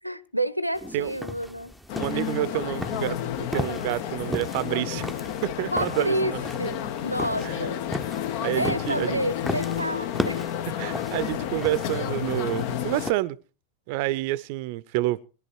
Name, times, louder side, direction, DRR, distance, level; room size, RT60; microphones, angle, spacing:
voice 1, 0.0-1.7 5.7-6.3 6.6-7.9 8.5-10.4, right 1 dB, 90° right, 0.9 m, -29 dB
sound 1, 0.8-13.1, left 1 dB, ahead, 0.8 m, -37 dB
sound 2, 1.9-13.1, left 10 dB, 50° left, 0.8 m, -31 dB
voice 2, 2.0-5.1 5.4-6.4 7.4-7.7 8.4-9.2 10.8-13.4 13.9-15.3, right 16 dB, 45° right, 0.6 m, -28 dB
21.0 x 11.0 x 4.5 m
figure-of-eight pair, 90°, 0 cm